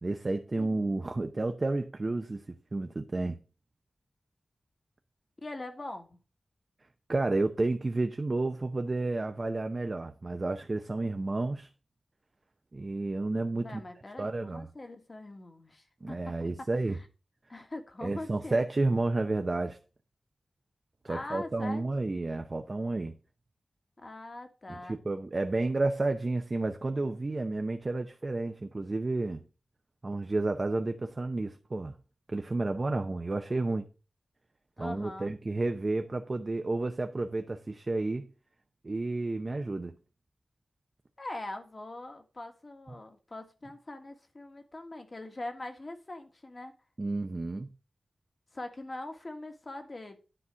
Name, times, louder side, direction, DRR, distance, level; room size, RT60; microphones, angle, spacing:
voice 1, 0.0-3.4 7.1-11.7 12.7-13.8 14.2-14.7 16.0-17.0 18.0-19.8 21.0-23.1 24.7-29.4 30.0-32.0 32.3-33.9 34.8-38.3 38.8-39.9 47.0-47.7, right 2 dB, 40° right, 0.7 m, -31 dB
voice 2, 0.6-1.0 5.4-6.2 13.6-16.2 16.9-17.0 17.5-18.7 21.1-21.8 24.0-25.0 34.8-35.3 41.2-46.7 48.5-50.2, left 2 dB, 40° left, 1.6 m, -42 dB
9.9 x 4.1 x 6.3 m
wide cardioid pair, 105°, 0 cm